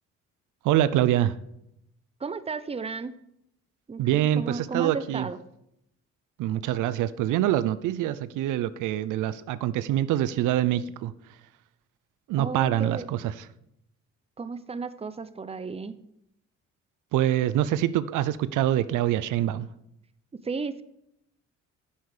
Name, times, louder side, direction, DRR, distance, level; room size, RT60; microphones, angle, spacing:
voice 1, 0.6-1.3 4.0-5.3 6.4-11.1 12.3-13.3 17.1-19.7, right 12 dB, 85° right, 0.6 m, -25 dB
voice 2, 2.2-3.1 3.9-5.4 12.3-13.1 14.4-16.0 20.4-20.8, right 4 dB, 20° right, 0.7 m, -34 dB
10.0 x 7.9 x 4.9 m
cardioid pair, 90°, 30 cm